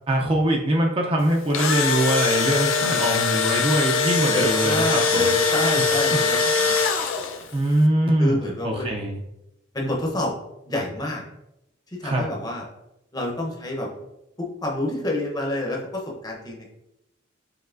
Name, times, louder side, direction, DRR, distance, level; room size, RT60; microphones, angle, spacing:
voice 1, 0.1-5.3 7.5-8.4 8.6-9.2 12.0-12.3, right 1 dB, 30° right, 1 dB, 0.4 m, -22 dB
Engine / Drill, 1.3-7.5, left 4 dB, 85° left, 0.5 m, -22 dB
voice 2, 4.3-6.8 8.2-9.0 9.7-10.3 10.7-11.2 11.9-12.6 13.1-13.9 14.4-16.7, left 1 dB, 20° left, -1 dB, 0.7 m, -28 dB
5.4 x 3.1 x 2.5 m, 0.88 s
head